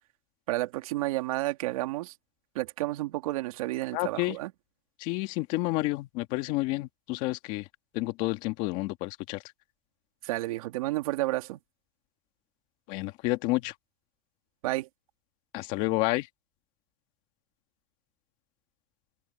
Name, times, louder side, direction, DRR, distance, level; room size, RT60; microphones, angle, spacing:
voice 1, 0.5-2.1 2.5-4.5 10.2-11.6 14.6-14.9, right 18 dB, 70° right, 2.6 m, -31 dB
voice 2, 3.9-4.4 5.0-7.7 7.9-9.4 12.9-13.7 15.5-16.3, left 20 dB, 45° left, 1.9 m, -30 dB
open air
supercardioid pair, 165°, 19 cm